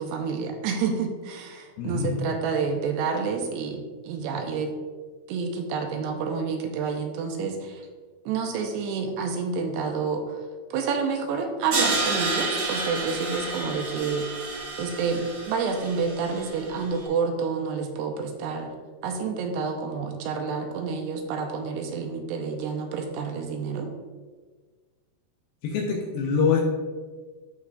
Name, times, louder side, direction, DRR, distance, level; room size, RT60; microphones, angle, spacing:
voice 1, 0.0-4.7 5.3-7.8 8.3-10.4 10.7-14.5 14.8-18.7 19.0-23.9, right 5 dB, 85° right, 4 dB, 2.8 m, -29 dB
voice 2, 1.8-2.2 25.6-26.6, left 5 dB, 75° left, -1 dB, 2.5 m, -24 dB
Crash cymbal, 11.7-16.8, right 3 dB, 50° right, 2.2 m, -30 dB
14.0 x 4.8 x 2.4 m, 1.4 s
omnidirectional pair, 4.8 m